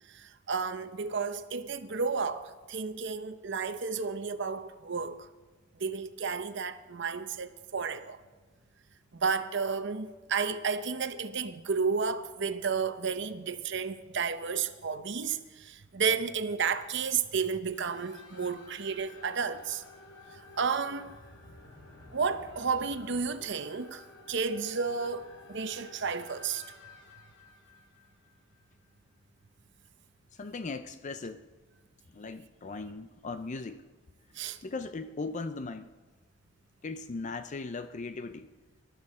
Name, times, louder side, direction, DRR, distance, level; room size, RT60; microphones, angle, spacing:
voice 1, 0.1-5.3 5.8-8.2 9.1-19.8 20.6-21.2 22.1-26.6 34.4-34.6, right 5 dB, 65° right, 0.8 m, -32 dB
sound 1, 17.7-28.9, left 2 dB, 70° left, 2.4 m, -53 dB
voice 2, 30.3-31.5 32.1-33.9 34.6-35.9 36.8-38.5, left 3 dB, 40° left, 0.5 m, -38 dB
22.0 x 12.5 x 4.3 m
head